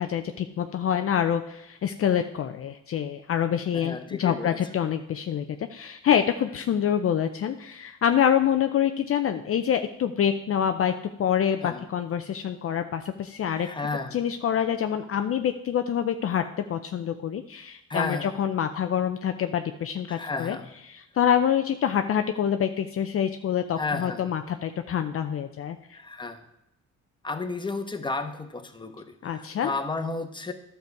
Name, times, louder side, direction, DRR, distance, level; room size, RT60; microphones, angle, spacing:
voice 1, 0.0-5.4 5.7-10.9 11.2-13.7 14.1-20.6 20.9-26.0 29.2-29.7, left 9 dB, 50° left, 7 dB, 0.6 m, -26 dB
voice 2, 3.7-4.6 11.6-11.9 13.6-14.2 17.9-18.4 20.1-20.7 23.8-24.3 25.9-26.4 27.2-30.5, left 3 dB, 15° left, 6 dB, 1.1 m, -33 dB
10.5 x 6.8 x 4.7 m, 0.84 s
cardioid pair, 90°, 30 cm